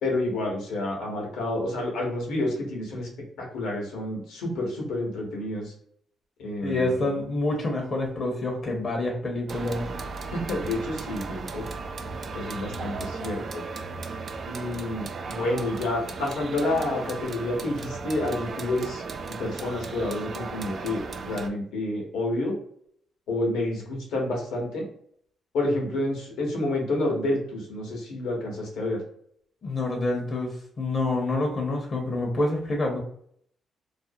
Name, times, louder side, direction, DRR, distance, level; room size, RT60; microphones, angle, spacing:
voice 1, 0.0-3.1 3.4-5.7 6.4-7.0 10.3-11.7 12.3-13.6 14.5-19.0 19.4-22.6 23.3-24.8 25.5-29.0, left 1 dB, 80° left, 0 dB, 0.9 m, -29 dB
voice 2, 6.6-9.9 29.6-30.5 30.8-33.0, left 2 dB, 50° left, 1 dB, 0.7 m, -27 dB
sound 1, 9.5-21.5, right 4 dB, 55° right, 0.3 m, -36 dB
2.5 x 2.0 x 2.6 m, 0.65 s
supercardioid pair, 60°, 0 cm